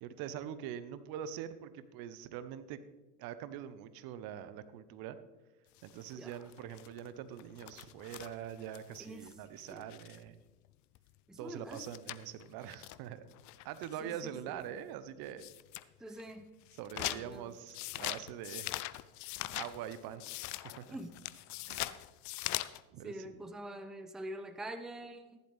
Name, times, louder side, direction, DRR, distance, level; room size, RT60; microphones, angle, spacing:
voice 1, 0.0-2.8 3.2-5.2 5.8-10.4 11.4-13.2 13.6-15.5 16.8-18.7 19.5-20.2 20.5-20.8 21.7-21.9 22.9-23.4, right 10 dB, 50° right, 13 dB, 0.9 m, -44 dB
sound 1, 5.8-10.3 10.6-10.7 10.9-11.0 11.4-11.5 11.7-14.0 14.6-14.7 15.3-15.8 16.2-22.8, left 17 dB, 40° left, 0.5 m, -42 dB
voice 2, 9.0-9.3 9.7-9.9 11.3-11.9 14.0-14.6 16.0-16.5 17.0-17.6 20.9-21.2 23.0-25.4, right 1 dB, ahead, 10 dB, 0.7 m, -45 dB
14.5 x 11.0 x 3.4 m, 1.1 s
hypercardioid pair, 75°, 46 cm